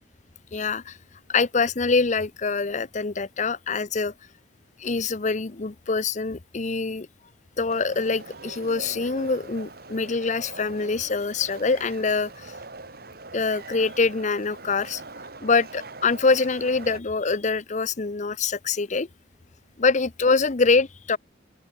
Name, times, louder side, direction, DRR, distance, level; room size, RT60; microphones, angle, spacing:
voice 1, 0.5-1.0 1.3-4.1 4.8-7.1 7.6-12.5 13.3-15.0 15.4-19.1 19.8-21.2, left 4 dB, 40° left, 0.7 m, -24 dB
sound 1, 7.7-17.0, right 3 dB, 55° right, 4.2 m, -42 dB
open air
head